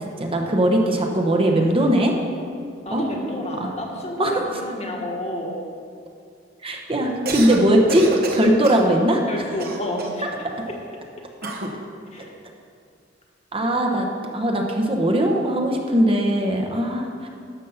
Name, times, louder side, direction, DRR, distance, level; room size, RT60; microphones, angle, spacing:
voice 1, 0.2-2.1 2.9-3.0 3.6-3.7 4.2-4.4 6.6-8.1 8.3-9.2 10.4-10.5 13.5-14.1 14.3-17.3, right 1 dB, 30° right, 1 dB, 1.1 m, -20 dB
voice 2, 2.8-5.6 9.3-10.3 10.7-10.8 12.1-12.3, left 1 dB, 35° left, 0 dB, 1.5 m, -30 dB
Cough, 7.1-7.6 7.9-8.9 9.6-10.3 11.4-11.8, right 2 dB, 50° right, 1.3 m, -28 dB
12.5 x 7.3 x 5.7 m, 2.3 s
head